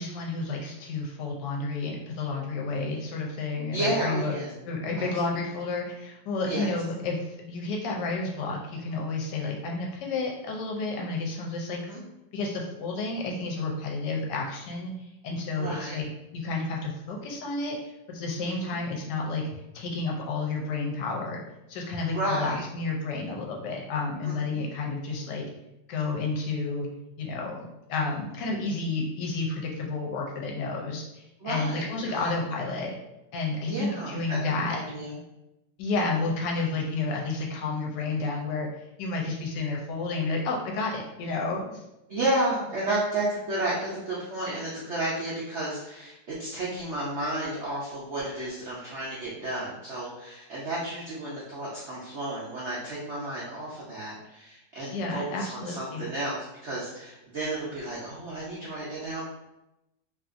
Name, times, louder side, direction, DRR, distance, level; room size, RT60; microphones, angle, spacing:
voice 1, 0.0-4.4 4.6-11.8 12.3-19.5 19.7-21.4 21.7-25.5 25.9-26.9 27.2-33.0 33.3-34.8 35.8-41.8 54.8-56.1, left 3 dB, 75° left, -1 dB, 1.1 m, -31 dB
voice 2, 3.7-4.5 5.0-5.1 6.4-6.7 11.7-12.0 15.6-16.1 18.4-18.8 22.1-22.6 24.2-24.7 31.4-32.3 33.7-34.4 34.7-35.2 42.1-59.2, right 1 dB, 85° right, -7 dB, 0.6 m, -32 dB
2.8 x 2.5 x 2.4 m, 0.91 s
omnidirectional pair, 2.0 m